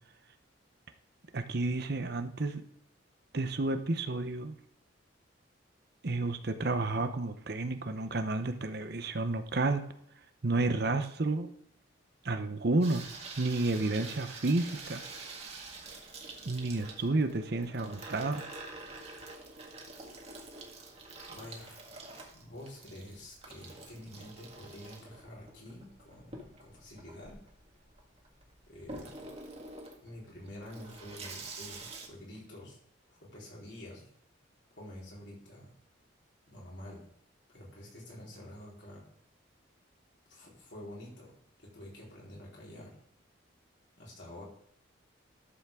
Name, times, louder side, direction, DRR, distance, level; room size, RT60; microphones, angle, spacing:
voice 1, 1.3-2.6 3.3-4.5 6.0-9.9 10.4-11.5 12.2-13.0 13.4-15.0 16.4-18.5, right 2 dB, 55° right, 9 dB, 0.8 m, -31 dB
Water tap faucet / Sink (filling or washing), 12.8-32.1, right 3 dB, 30° right, 1.7 m, -47 dB
voice 2, 21.3-21.9 22.3-27.4 28.7-29.2 30.0-32.8 33.1-34.1 34.7-35.7 36.5-37.0 37.5-39.0 40.3-41.3 41.6-43.0 44.0-44.4, left 1 dB, 60° left, -5 dB, 4.3 m, -48 dB
11.5 x 7.2 x 3.7 m, 0.72 s
head